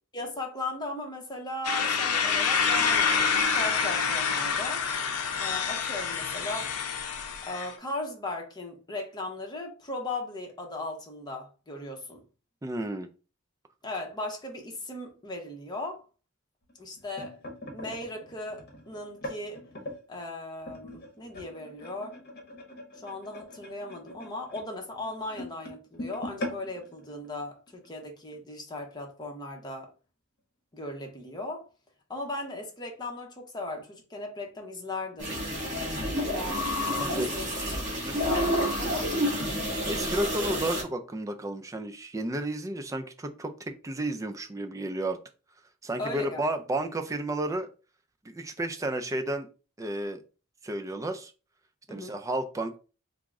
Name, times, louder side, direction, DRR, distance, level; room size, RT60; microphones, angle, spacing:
voice 1, 0.1-4.9 5.4-6.7 7.5-12.2 13.8-16.0 16.8-17.4 17.7-19.6 20.1-22.2 22.9-29.9 30.7-31.6 32.1-35.3 36.0-37.5 38.2-39.1 46.0-46.4 51.9-52.1, left 2 dB, 20° left, 0.7 m, -37 dB
sound 1, 1.6-7.7, left 6 dB, 85° left, 0.6 m, -27 dB
voice 2, 12.6-13.1 37.0-37.3 38.0-38.3 39.9-45.2 45.8-47.7 48.2-49.5 49.8-50.2 50.6-51.3 51.9-52.8, right 1 dB, 15° right, 0.3 m, -32 dB
sound 2, 16.7-20.0 20.6-27.9 28.3-28.5 28.8-29.1 29.8-29.9, left 1 dB, 45° left, 0.9 m, -42 dB
sound 3, 35.2-40.8, equal, 35° right, 1.5 m, -29 dB
3.6 x 2.0 x 3.5 m
head